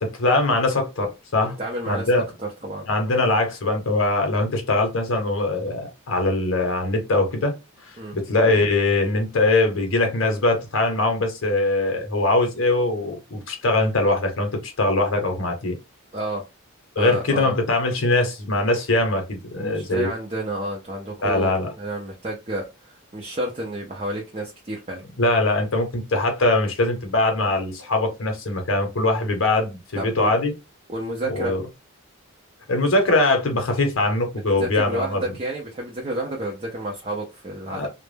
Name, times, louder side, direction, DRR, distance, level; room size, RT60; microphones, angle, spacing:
voice 1, 0.0-1.6 1.9-2.2 2.9-7.5 7.8-15.7 17.0-20.1 21.2-21.7 25.2-30.5 31.3-31.6 32.7-35.2 37.7-37.9, left 2 dB, 65° left, 0.7 m, -22 dB
voice 2, 1.4-2.8 8.0-8.1 16.1-16.4 17.0-17.5 19.6-25.0 30.0-30.3 30.9-31.5 34.6-37.9, right 1 dB, 30° right, 0.4 m, -30 dB
2.1 x 2.0 x 3.2 m
head